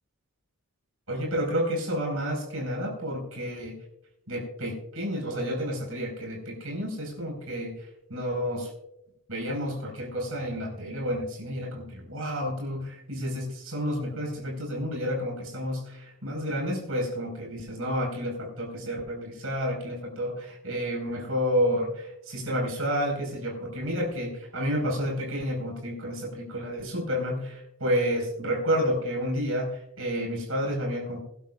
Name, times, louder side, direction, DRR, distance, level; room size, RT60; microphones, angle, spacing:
voice 1, 1.1-3.8 4.3-7.7 8.1-8.7 9.3-31.2, equal, 75° right, -1 dB, 4.7 m, -30 dB
22.5 x 11.5 x 2.4 m, 0.81 s
head